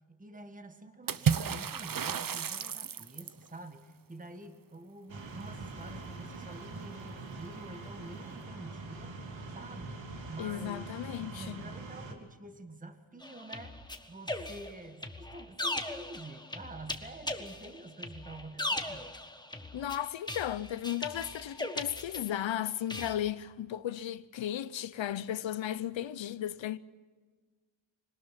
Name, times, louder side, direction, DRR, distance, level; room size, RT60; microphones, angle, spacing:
voice 1, 0.1-9.2 9.5-10.9 11.2-13.8 14.1-19.1, right 2 dB, 15° right, 1.7 m, -48 dB
Water / Splash splatter, 1.1-3.4, right 7 dB, 45° right, 0.9 m, -31 dB
sound 1, 5.1-12.1, right 3 dB, 75° right, 2.9 m, -44 dB
voice 2, 10.4-11.6 19.7-26.8, left 11 dB, 70° left, 0.8 m, -35 dB
sound 2, 13.2-22.5 22.9-23.1, left 2 dB, 10° left, 1.5 m, -39 dB
25.5 x 19.0 x 5.9 m
wide cardioid pair, 115°, 46 cm